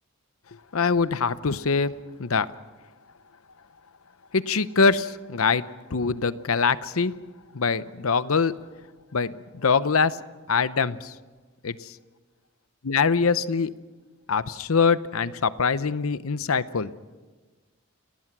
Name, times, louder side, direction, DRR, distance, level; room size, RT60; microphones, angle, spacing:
voice 1, 0.7-2.5 4.3-5.6 5.9-7.1 7.5-8.5 9.1-10.2 10.5-11.1 11.6-11.9 12.8-13.7 14.3-16.9, left 5 dB, 75° left, 15 dB, 0.8 m, -23 dB
30.0 x 19.0 x 6.1 m, 1.3 s
head